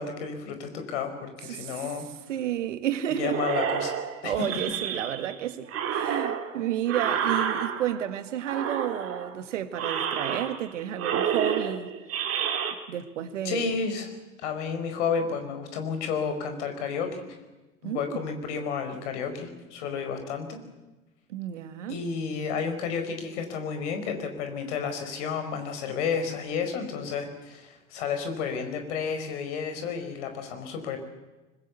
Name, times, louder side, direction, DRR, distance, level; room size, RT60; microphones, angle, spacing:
voice 1, 0.0-2.1 3.2-3.9 4.2-4.6 13.4-14.1 14.4-17.2 17.8-20.6 21.9-31.0, left 6 dB, 60° left, 4.8 m, -31 dB
voice 2, 1.5-1.8 2.3-3.4 4.2-11.9 12.9-13.7 17.8-18.2 21.3-22.0, right 11 dB, 65° right, 1.8 m, -31 dB
sound 1, 3.3-5.3 5.7-8.1 8.4-9.3 9.7-10.7 11.0-12.7, right 8 dB, 35° right, 2.9 m, -30 dB
24.5 x 21.0 x 8.2 m
figure-of-eight pair, 80°, 40 cm